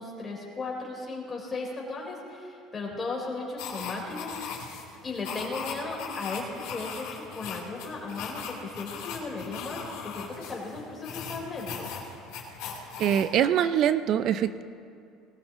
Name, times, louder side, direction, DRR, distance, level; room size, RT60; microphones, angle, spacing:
voice 1, 0.0-4.6 5.0-11.9, left 3 dB, 25° left, -2 dB, 4.3 m, -36 dB
sound 1, 3.6-13.3, left 5 dB, 80° left, 3.4 m, -39 dB
voice 2, 13.0-14.6, right 10 dB, 55° right, 12 dB, 0.5 m, -24 dB
19.5 x 17.5 x 3.1 m, 2.4 s
supercardioid pair, 110°, 0 cm